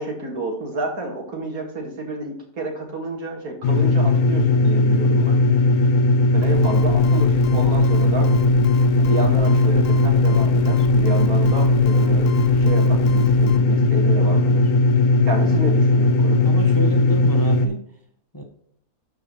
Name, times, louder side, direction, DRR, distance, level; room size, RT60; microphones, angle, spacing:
voice 1, 0.0-5.4 6.3-8.3 9.0-14.7 15.3-16.5, right 2 dB, 80° right, 1 dB, 2.3 m, -30 dB
sound 1, 3.6-17.7, left 2 dB, 85° left, 1.3 m, -17 dB
sound 2, 6.4-13.6, left 4 dB, 65° left, 1.0 m, -36 dB
voice 2, 16.4-17.8 18.3-18.4, left 1 dB, 15° left, 3 dB, 0.9 m, -30 dB
12.0 x 4.7 x 3.1 m, 0.65 s
omnidirectional pair, 1.5 m